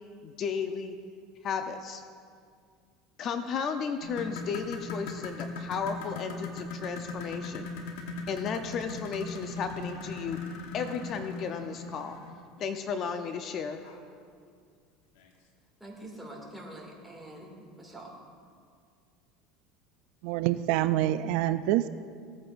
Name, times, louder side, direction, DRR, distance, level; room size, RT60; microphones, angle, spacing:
voice 1, 0.2-1.0 1.4-2.0 3.2-7.7 8.3-10.4 10.7-12.2 12.6-13.8, left 6 dB, 45° left, 7 dB, 0.6 m, -34 dB
sound 1, 4.0-12.4 13.8-14.0 14.5-14.6 15.2-15.3, left 3 dB, 80° left, 1.2 m, -39 dB
voice 2, 15.8-18.1, right 1 dB, ahead, -2 dB, 2.2 m, -45 dB
voice 3, 20.2-21.9, right 14 dB, 70° right, 12 dB, 0.3 m, -26 dB
16.5 x 8.7 x 2.6 m, 2.1 s
supercardioid pair, 110°, 0 cm